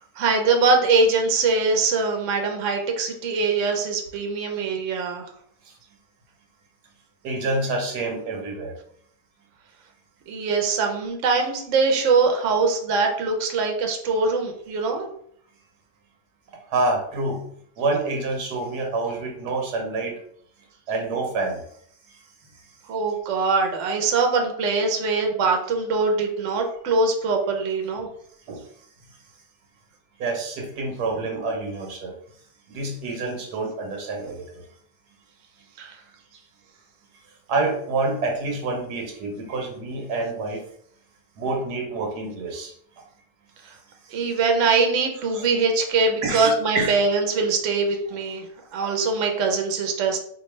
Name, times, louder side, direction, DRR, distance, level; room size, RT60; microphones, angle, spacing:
voice 1, 0.2-5.2 10.3-15.1 22.9-28.1 35.8-36.0 44.1-48.5 48.7-50.2, right 4 dB, 60° right, 3 dB, 1.0 m, -22 dB
voice 2, 7.2-8.7 16.7-17.5 17.8-20.2 20.9-21.6 28.5-28.6 30.2-32.1 32.7-34.6 37.5-40.6 41.4-42.7 45.3-45.4 46.2-46.9, right 3 dB, 90° right, 2 dB, 1.4 m, -27 dB
4.5 x 2.7 x 3.2 m, 0.65 s
omnidirectional pair, 1.7 m